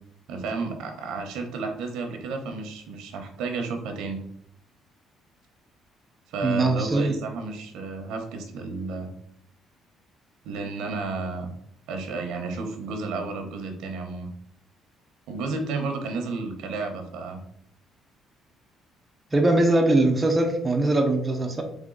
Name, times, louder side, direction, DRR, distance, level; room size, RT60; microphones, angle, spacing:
voice 1, 0.3-4.2 6.3-9.1 10.4-11.5 11.9-14.3 15.3-17.4, right 3 dB, 85° right, 4 dB, 0.9 m, -32 dB
voice 2, 6.4-7.2 19.3-21.6, right 2 dB, 10° right, 1 dB, 0.5 m, -21 dB
3.6 x 3.6 x 3.8 m, 0.68 s
cardioid pair, 180°, 0 cm